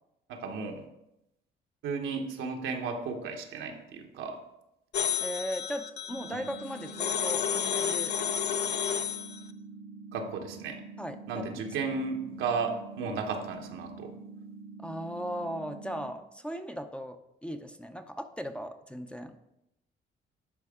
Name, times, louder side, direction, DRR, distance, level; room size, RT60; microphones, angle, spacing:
voice 1, 0.3-0.8 1.8-4.4 6.3-6.4 10.1-10.8 11.3-14.1, right 5 dB, 85° right, 3 dB, 1.1 m, -34 dB
sound 1, 4.9-9.4, left 8 dB, 55° left, 0.6 m, -31 dB
voice 2, 5.2-8.1 11.0-11.9 14.8-19.4, equal, 5° left, 7 dB, 0.5 m, -38 dB
sound 2, 6.1-16.1, right 4 dB, 55° right, 0.7 m, -46 dB
11.0 x 4.7 x 3.6 m, 0.86 s
cardioid pair, 90°, 20 cm